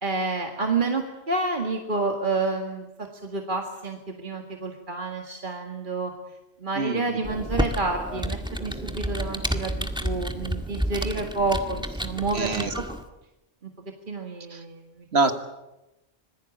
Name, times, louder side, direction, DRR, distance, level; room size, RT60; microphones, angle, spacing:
voice 1, 0.0-6.1 6.6-12.8 13.6-13.7 14.1-15.1, right 3 dB, 40° right, 3 dB, 2.2 m, -29 dB
voice 2, 6.8-7.3 12.3-12.7 14.5-14.6 15.1-15.3, right 3 dB, 55° right, 8 dB, 2.0 m, -25 dB
Computer keyboard, 7.2-13.0, equal, 5° right, 1.8 m, -30 dB
25.5 x 20.5 x 8.6 m, 0.96 s
omnidirectional pair, 1.3 m